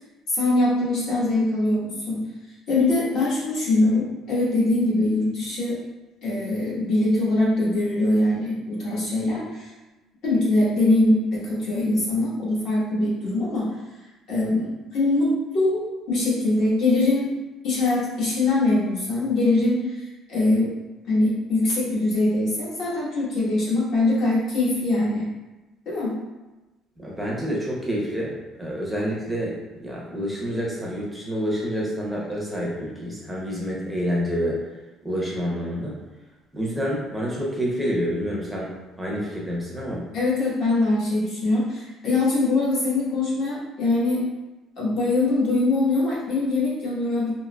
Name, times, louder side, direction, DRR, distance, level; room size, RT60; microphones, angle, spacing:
voice 1, 0.3-2.2 2.7-5.8 6.2-9.7 10.2-13.7 14.3-15.8 16.1-17.3 17.6-20.8 21.1-25.3 25.8-26.2 40.1-44.2 44.8-47.3, left 2 dB, 50° left, -7 dB, 1.2 m, -22 dB
voice 2, 27.0-28.3 28.6-29.6 29.8-34.6 35.0-36.0 36.5-40.1, equal, ahead, -5 dB, 0.6 m, -28 dB
3.5 x 2.8 x 2.2 m, 1.1 s
cardioid pair, 180°, 0 cm